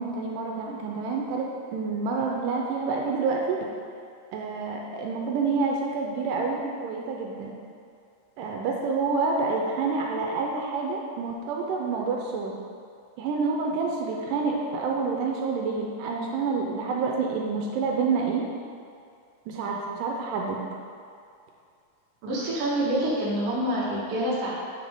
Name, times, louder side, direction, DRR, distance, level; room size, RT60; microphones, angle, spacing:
voice 1, 0.0-3.6 4.3-7.6 8.4-12.6 13.2-18.5 19.5-20.7, right 4 dB, 85° right, 0 dB, 2.2 m, -28 dB
voice 2, 22.2-24.5, right 1 dB, 55° right, -6 dB, 2.2 m, -26 dB
7.1 x 5.9 x 3.6 m, 2.3 s
omnidirectional pair, 3.8 m